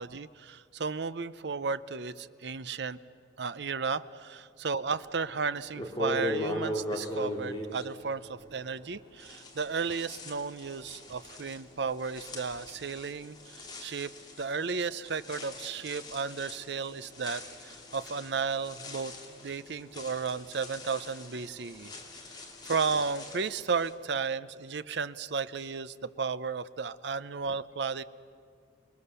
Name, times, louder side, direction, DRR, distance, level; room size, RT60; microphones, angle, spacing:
voice 1, 0.0-3.0 3.4-14.1 14.4-21.9 22.3-28.0, right 5 dB, 60° right, 15 dB, 0.6 m, -34 dB
russling leaves, 5.2-5.3 5.7-8.9 9.2-23.9, left 1 dB, 20° left, 2.7 m, -40 dB
29.5 x 20.5 x 6.9 m, 2.3 s
head